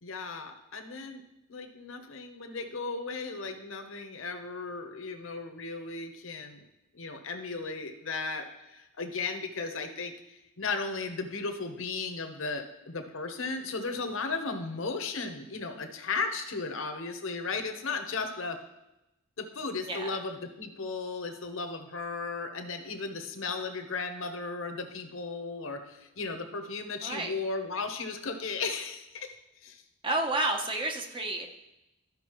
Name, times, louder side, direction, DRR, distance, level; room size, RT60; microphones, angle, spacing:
voice 1, 0.0-1.2 1.5-6.6 6.9-18.6 19.4-29.4 29.6-29.8, left 4 dB, 65° left, 6 dB, 0.9 m, -35 dB
voice 2, 19.9-20.2 27.0-27.3 30.0-31.5, right 2 dB, 25° right, 3 dB, 0.8 m, -30 dB
13.0 x 5.2 x 3.0 m, 0.91 s
head